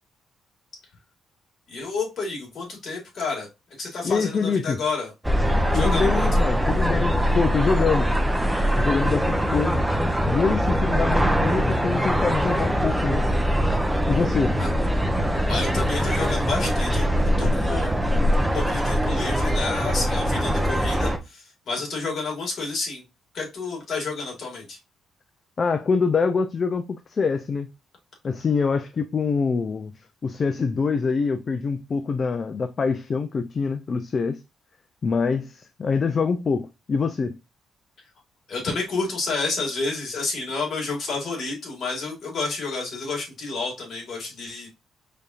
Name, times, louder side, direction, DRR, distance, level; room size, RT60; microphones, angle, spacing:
voice 1, 1.7-3.5 3.8-5.1 5.7-6.4 14.6-14.7 15.5-17.1 17.4-18.0 18.4-23.0 23.3-24.8 38.5-44.7, left 3 dB, 55° left, 2.0 m, -30 dB
voice 2, 4.0-4.8 5.7-8.1 8.8-9.8 10.3-13.2 14.1-14.6 25.6-27.7 28.2-34.4 35.0-37.4, left 5 dB, 40° left, 0.4 m, -25 dB
sound 1, 5.2-21.2, equal, 5° right, 0.7 m, -22 dB
5.0 x 2.8 x 2.4 m
cardioid pair, 90°, 0 cm